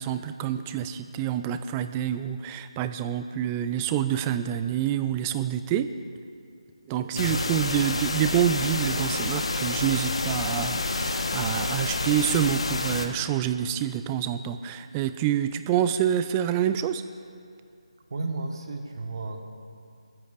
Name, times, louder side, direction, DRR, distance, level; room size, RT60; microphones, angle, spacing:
voice 1, 0.0-5.9 6.9-17.0, right 10 dB, 15° right, 11 dB, 0.4 m, -27 dB
voice 2, 7.1-7.5 18.1-19.4, right 3 dB, 50° right, 3 dB, 1.5 m, -33 dB
sound 1, 7.2-13.1, left 3 dB, 65° left, 1.2 m, -28 dB
27.0 x 14.5 x 2.5 m, 2.4 s
figure-of-eight pair, 160°, 3 cm